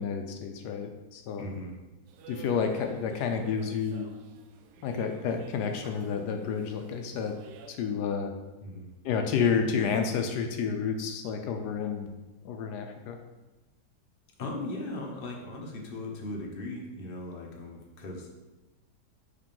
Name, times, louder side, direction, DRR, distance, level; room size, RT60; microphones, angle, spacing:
voice 1, 0.0-1.4 2.3-4.1 4.8-7.4 7.7-8.3 9.0-12.1 12.4-13.2, left 6 dB, 80° left, 5 dB, 1.2 m, -30 dB
voice 2, 1.4-1.8 8.6-8.9 14.4-18.3, left 2 dB, 40° left, 0 dB, 1.0 m, -38 dB
sound 1, 2.1-7.7, right 4 dB, 85° right, 1.2 m, -49 dB
5.0 x 3.6 x 5.4 m, 1.1 s
omnidirectional pair, 1.8 m